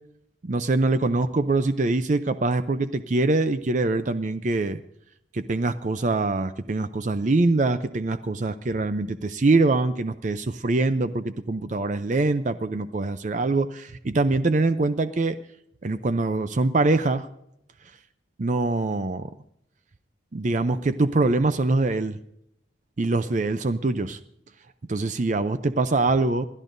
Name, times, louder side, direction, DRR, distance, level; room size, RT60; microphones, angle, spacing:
voice 1, 0.4-4.8 5.3-15.4 15.8-17.3 18.4-19.3 20.3-22.2 23.0-24.2 24.9-26.5, right 3 dB, 40° right, 11 dB, 0.5 m, -24 dB
27.0 x 12.0 x 2.6 m, 0.75 s
head